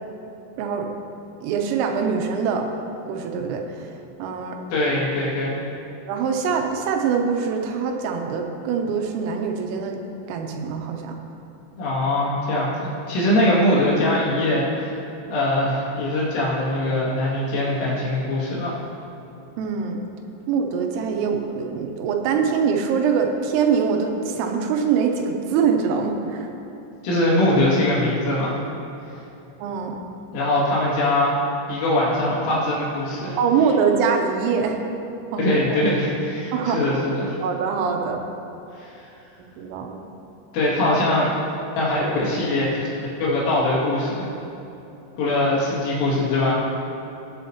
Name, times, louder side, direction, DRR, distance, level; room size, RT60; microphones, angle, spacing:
voice 1, 0.6-0.9 1.4-2.7 3.1-3.9 4.2-4.6 6.1-10.0 10.3-11.2 19.6-20.0 20.5-26.5 29.6-30.0 33.4-34.8 35.3-35.9 36.5-37.0 37.4-38.2 39.6-40.0, right 6 dB, 85° right, 3 dB, 3.4 m, -23 dB
voice 2, 4.7-5.6 11.8-15.0 15.3-18.8 27.0-28.6 30.3-31.3 31.7-33.4 35.4-37.4 38.7-39.1 40.5-41.3 41.8-42.8 43.2-44.3 45.2-46.5, left 1 dB, 75° left, -7 dB, 4.8 m, -22 dB
19.5 x 8.1 x 2.9 m, 3.0 s
omnidirectional pair, 5.9 m